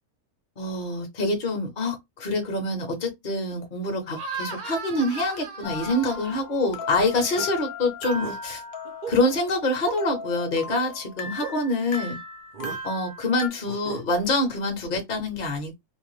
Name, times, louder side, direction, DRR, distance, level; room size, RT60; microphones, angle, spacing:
voice 1, 0.6-8.6 9.1-12.2 12.8-15.8, left 2 dB, 40° left, 0.7 m, -26 dB
sound 1, 4.1-6.8 7.2-7.5 8.0-8.4 8.8-9.1 9.8-10.0 10.7-10.8 11.4-11.6 12.5-12.8 13.7-14.0, right 4 dB, 80° right, 0.4 m, -36 dB
sound 2, 5.6-13.5, left 3 dB, 75° left, 0.4 m, -37 dB
2.6 x 2.1 x 3.1 m
omnidirectional pair, 1.6 m